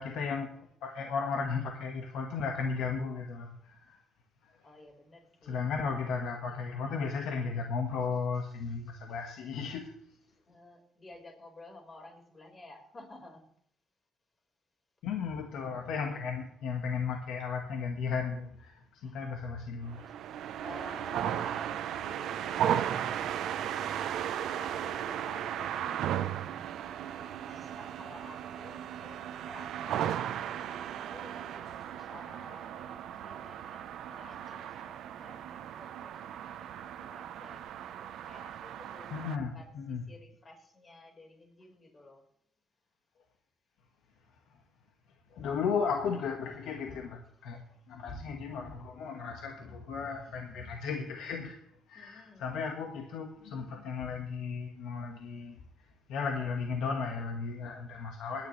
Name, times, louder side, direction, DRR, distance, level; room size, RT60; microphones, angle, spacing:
voice 1, 0.0-4.0 4.4-4.5 5.4-9.9 15.0-20.1 39.1-40.0 45.3-51.6 51.9-55.6 56.1-58.5, left 5 dB, 85° left, 2 dB, 1.5 m, -35 dB
voice 2, 4.6-6.0 8.6-9.1 9.7-9.8 10.5-13.5 19.0-19.2 20.1-20.2 20.6-30.1 30.5-42.2 47.9-48.0 51.9-52.5, left 2 dB, 35° left, 0 dB, 4.5 m, -53 dB
sound 1, 19.9-39.4, right 10 dB, 80° right, 0.7 m, -36 dB
22.0 x 10.5 x 3.3 m, 0.67 s
cardioid pair, 90°, 0 cm